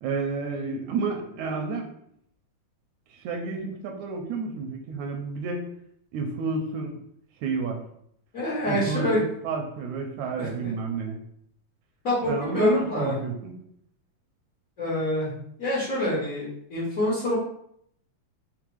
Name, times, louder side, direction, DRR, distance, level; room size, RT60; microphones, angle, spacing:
voice 1, 0.0-1.9 3.1-5.7 6.1-7.0 7.4-7.8 8.6-11.2 12.2-13.5, right 4 dB, 80° right, 2 dB, 1.9 m, -30 dB
voice 2, 8.3-9.2 10.4-10.7 12.0-13.2 14.8-15.3 15.6-17.3, left 1 dB, 75° left, -9 dB, 0.7 m, -26 dB
4.8 x 2.0 x 4.5 m, 0.70 s
omnidirectional pair, 3.4 m